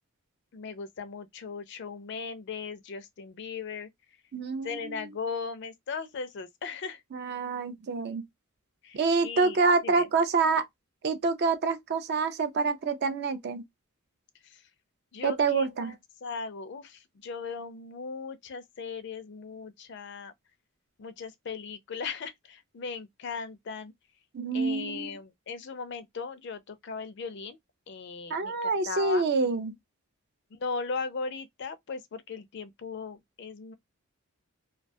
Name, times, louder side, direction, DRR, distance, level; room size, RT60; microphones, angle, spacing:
voice 1, 0.5-3.9 4.6-7.0 8.8-9.6 9.8-10.1 15.1-15.9 16.2-20.3 21.0-23.9 24.5-27.6 27.9-29.2 30.5-33.7, left 5 dB, 55° left, 0.4 m, -38 dB
voice 2, 4.3-5.0 7.1-8.3 8.9-10.6 11.0-13.6 15.2-15.9 24.3-25.2 28.3-29.7, right 4 dB, 50° right, 0.4 m, -27 dB
2.3 x 2.2 x 2.5 m
head